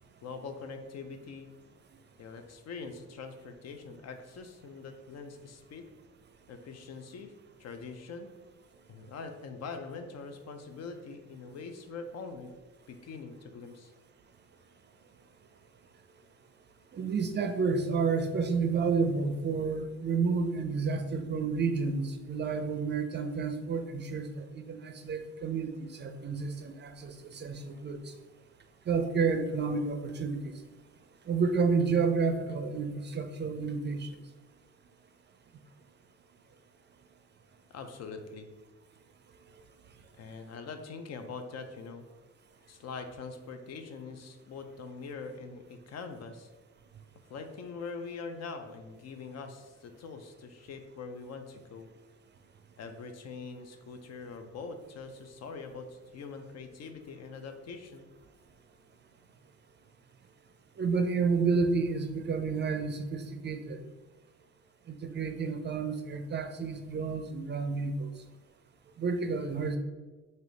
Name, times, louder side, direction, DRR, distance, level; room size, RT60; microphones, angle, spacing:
voice 1, 0.2-1.5 2.2-5.9 6.5-7.3 7.6-8.3 8.9-12.6 12.9-13.9 37.7-38.5 40.2-42.0 42.7-46.5 47.3-51.9 52.8-58.0, left 4 dB, 60° left, 7 dB, 0.5 m, -43 dB
voice 2, 16.9-28.0 28.9-30.5 31.3-34.1 60.8-63.8 64.9-68.1 69.0-69.8, right 4 dB, 35° right, 6 dB, 0.4 m, -30 dB
3.3 x 2.7 x 3.9 m, 1.2 s
cardioid pair, 90°, 30 cm